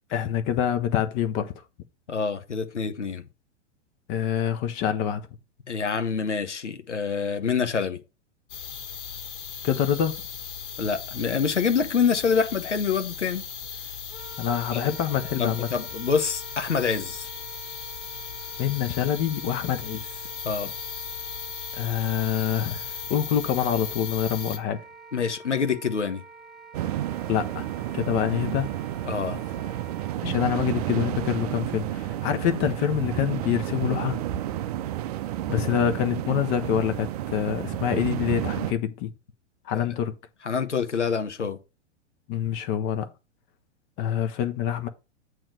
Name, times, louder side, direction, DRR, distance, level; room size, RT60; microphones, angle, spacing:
voice 1, 0.1-1.5 4.1-5.3 9.6-10.2 14.4-15.7 18.6-20.1 21.7-24.8 27.3-27.7 27.9-28.7 30.2-34.2 35.5-39.1 39.6-40.1 42.3-43.1 44.0-44.9, left 9 dB, 20° left, 0.5 m, -26 dB
voice 2, 2.1-3.2 5.7-8.0 10.8-13.4 14.7-14.9 15.4-17.3 20.4-20.7 25.1-26.2 29.1-29.4 30.2-30.3 39.7-39.9 40.4-41.6, left 6 dB, 75° left, 1.0 m, -26 dB
sound 1, 8.5-24.6, left 7 dB, 45° left, 1.8 m, -37 dB
Wind instrument woodwind instrument, 14.1-30.2, right 5 dB, ahead, 0.9 m, -47 dB
sound 2, 26.7-38.7, right 13 dB, 35° right, 0.5 m, -31 dB
8.7 x 3.1 x 6.2 m
figure-of-eight pair, 105°, 35 cm